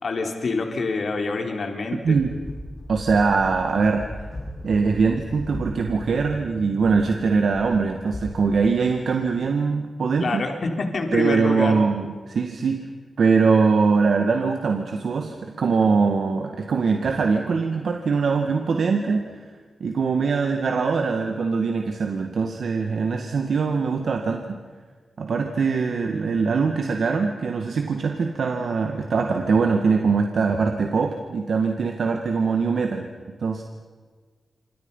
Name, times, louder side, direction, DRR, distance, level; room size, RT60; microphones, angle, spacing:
voice 1, 0.0-2.2 10.2-11.8, left 3 dB, 60° left, 3 dB, 3.9 m, -26 dB
sound 1, 2.1-9.3, left 1 dB, 25° left, 6.2 m, -38 dB
voice 2, 2.9-4.1 4.6-10.4 11.1-12.9 13.2-19.3 19.8-24.6 25.2-33.1 33.4-33.6, right 5 dB, 70° right, 4 dB, 2.0 m, -22 dB
27.5 x 26.5 x 5.7 m, 1.5 s
wide cardioid pair, 95°, 0 cm